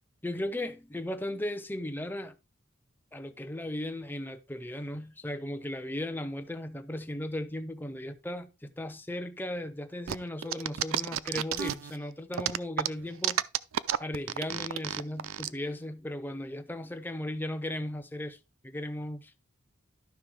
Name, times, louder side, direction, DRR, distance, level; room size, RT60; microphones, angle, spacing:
voice 1, 0.2-2.3 3.1-13.4 14.0-19.3, left 1 dB, 10° left, 0.7 m, -36 dB
sound 1, 10.1-12.0 12.3-15.5, right 10 dB, 75° right, 0.5 m, -30 dB
11.5 x 3.9 x 6.3 m
head